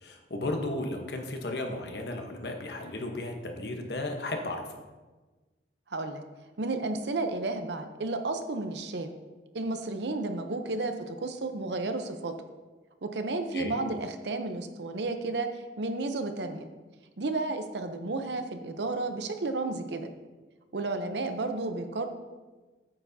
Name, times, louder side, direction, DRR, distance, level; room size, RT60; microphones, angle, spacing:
voice 1, 0.0-4.8 13.5-13.7, left 2 dB, 65° left, 3 dB, 1.1 m, -34 dB
voice 2, 5.9-6.2 6.6-9.1 9.5-12.3 13.0-15.5 15.8-16.7 17.2-20.1 20.7-22.1, right 2 dB, 75° right, 7 dB, 0.7 m, -32 dB
8.9 x 8.0 x 2.8 m, 1.3 s
head